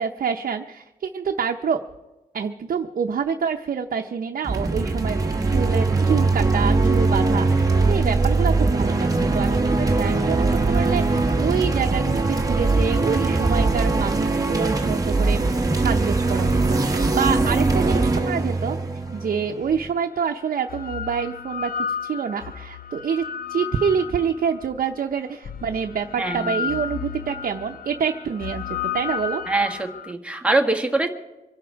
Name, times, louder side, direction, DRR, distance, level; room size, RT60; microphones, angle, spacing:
voice 1, 0.0-1.8 2.3-5.2 5.5-18.8 19.1-21.7 22.0-29.4, right 6 dB, 70° right, 4 dB, 0.7 m, -27 dB
sound 1, 4.4-19.9, right 3 dB, 25° right, 1.3 m, -21 dB
sound 2, 19.4-19.5 20.4-24.7 25.4-30.1, left 7 dB, 75° left, 0.5 m, -32 dB
voice 2, 26.2-26.5 29.5-31.1, right 2 dB, 10° right, 3 dB, 1.5 m, -23 dB
25.0 x 11.5 x 4.6 m, 1.1 s
wide cardioid pair, 170°, 15 cm